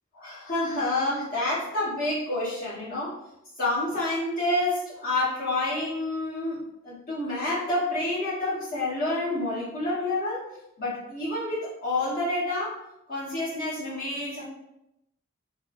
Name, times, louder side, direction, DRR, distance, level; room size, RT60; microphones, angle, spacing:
voice 1, 0.1-3.2 3.6-10.5 10.8-12.8 13.1-14.4, left 2 dB, 45° left, -9 dB, 1.5 m, -28 dB
3.4 x 2.1 x 2.7 m, 0.84 s
head